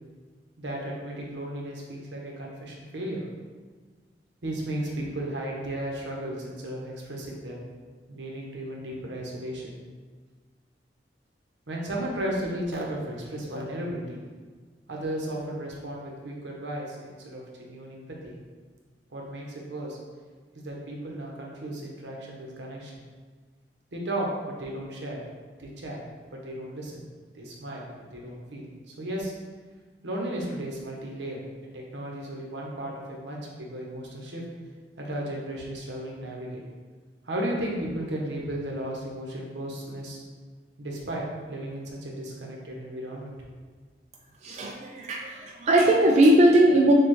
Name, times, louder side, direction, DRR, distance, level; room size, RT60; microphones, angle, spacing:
voice 1, 0.6-3.3 4.4-7.6 8.1-9.7 11.7-14.2 14.9-18.3 19.1-20.0 20.5-23.0 23.9-25.2 25.6-26.0 26.3-26.9 27.3-29.3 30.0-34.5 35.0-36.6 37.2-40.2 40.8-43.3, right 1 dB, 80° right, -2 dB, 0.9 m, -34 dB
voice 2, 44.4-46.9, right 1 dB, 40° right, 0 dB, 0.3 m, -19 dB
6.6 x 2.3 x 3.1 m, 1.5 s
head